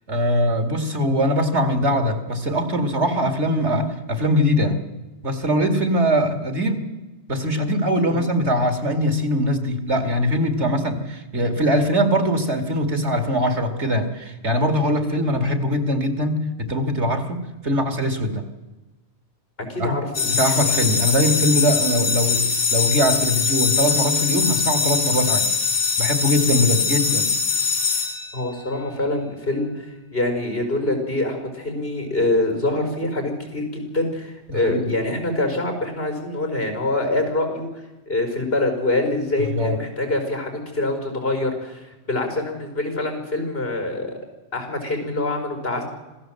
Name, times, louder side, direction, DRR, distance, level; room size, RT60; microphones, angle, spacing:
voice 1, 0.1-4.8 5.2-6.8 7.3-18.4 19.8-20.0 20.2-22.4 22.7-25.5 26.0-27.3 34.5-35.0 39.4-39.8, equal, 90° right, 7 dB, 2.8 m, -22 dB
voice 2, 19.6-20.3 28.3-44.1 44.5-45.8, left 2 dB, 60° left, 5 dB, 5.5 m, -25 dB
sound 1, 20.1-28.8, left 5 dB, 85° left, 3.1 m, -22 dB
26.5 x 16.5 x 7.8 m, 1.1 s
omnidirectional pair, 1.1 m